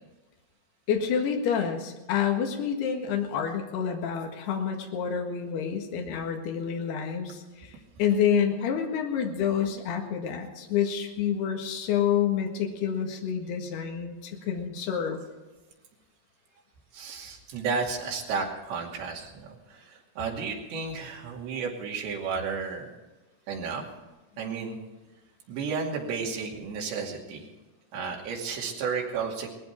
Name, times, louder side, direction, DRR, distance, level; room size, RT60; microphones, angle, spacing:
voice 1, 0.9-7.7 8.0-15.2, left 8 dB, 75° left, 2 dB, 3.7 m, -28 dB
voice 2, 16.9-22.9 23.5-23.8 24.4-24.8 25.5-27.5 27.9-29.5, right 5 dB, 90° right, -1 dB, 4.7 m, -32 dB
19.5 x 15.0 x 4.7 m, 1.1 s
omnidirectional pair, 4.9 m